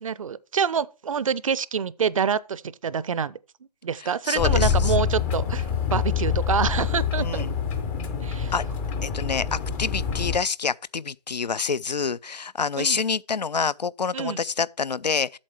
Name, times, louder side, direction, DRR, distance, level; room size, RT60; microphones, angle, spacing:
voice 1, 0.0-3.3 3.8-7.4 8.2-8.5 12.8-13.0 14.1-14.4, right 6 dB, 55° right, 0.5 m, -26 dB
voice 2, 4.3-4.9 7.2-7.5 8.5-8.6 9.0-15.4, left 5 dB, 85° left, 0.4 m, -27 dB
sound 1, 4.4-10.4, left 7 dB, 10° left, 0.4 m, -26 dB
8.5 x 6.6 x 4.4 m
figure-of-eight pair, 135°, 21 cm